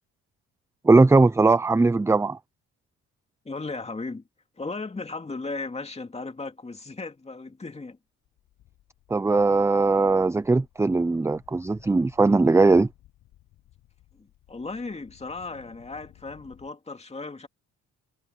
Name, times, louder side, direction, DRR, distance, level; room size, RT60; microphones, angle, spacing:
voice 1, 0.8-2.4 9.1-12.9, right 3 dB, 10° right, 0.4 m, -19 dB
voice 2, 3.4-4.2 4.6-8.0 14.1-17.5, left 3 dB, 20° left, 2.5 m, -36 dB
sound 1, 7.9-8.0 8.2-16.7, left 14 dB, 85° left, 7.6 m, -57 dB
cardioid pair, 90°, 30 cm